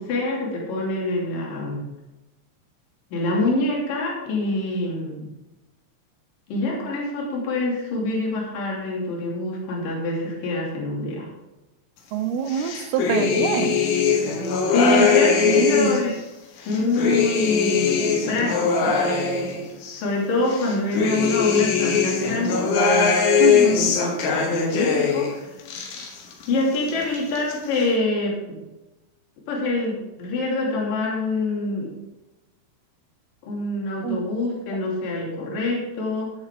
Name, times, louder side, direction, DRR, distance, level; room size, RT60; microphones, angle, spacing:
voice 1, 0.0-1.9 3.1-5.3 6.5-11.3 14.7-16.1 16.7-19.0 20.0-23.2 23.6-25.4 26.5-28.6 29.5-31.9 33.4-36.3, left 2 dB, 55° left, -3 dB, 4.1 m, -25 dB
voice 2, 12.1-13.8 15.4-16.1 23.4-24.0 34.0-34.3, right 7 dB, 75° right, 8 dB, 2.5 m, -25 dB
sound 1, 12.5-16.1 16.6-20.0 20.5-25.3 25.6-26.5 26.8-27.5, left 6 dB, 75° left, 3.7 m, -21 dB
17.0 x 7.0 x 3.7 m, 1.0 s
omnidirectional pair, 5.0 m